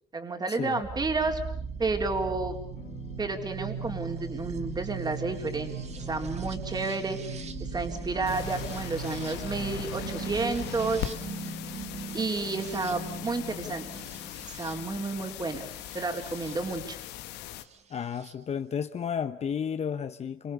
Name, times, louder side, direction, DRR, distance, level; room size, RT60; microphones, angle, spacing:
voice 1, 0.1-1.4 1.8-2.6 3.2-5.7 6.0-11.1 12.1-13.9 14.5-15.7 15.9-17.0, right 3 dB, 25° right, 4 dB, 4.0 m, -31 dB
sound 1, 0.8-16.6 17.7-18.3, right 7 dB, 40° right, 2.0 m, -39 dB
sound 2, 2.7-14.5, left 8 dB, 65° left, 4.1 m, -46 dB
sound 3, 8.3-17.6, left 13 dB, 90° left, 1.7 m, -40 dB
voice 2, 17.9-20.5, left 7 dB, 40° left, 10 dB, 1.0 m, -32 dB
28.5 x 26.0 x 6.9 m, 0.65 s
cardioid pair, 110°, 17 cm